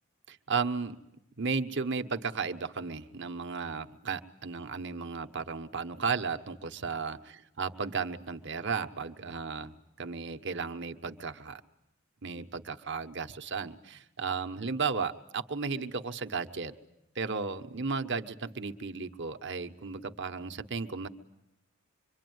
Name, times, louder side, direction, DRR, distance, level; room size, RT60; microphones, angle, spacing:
voice 1, 0.3-1.0 1.4-7.2 7.6-11.6 12.2-16.7 17.1-21.1, right 5 dB, 55° right, 8 dB, 1.2 m, -34 dB
26.0 x 23.5 x 9.5 m, 0.84 s
head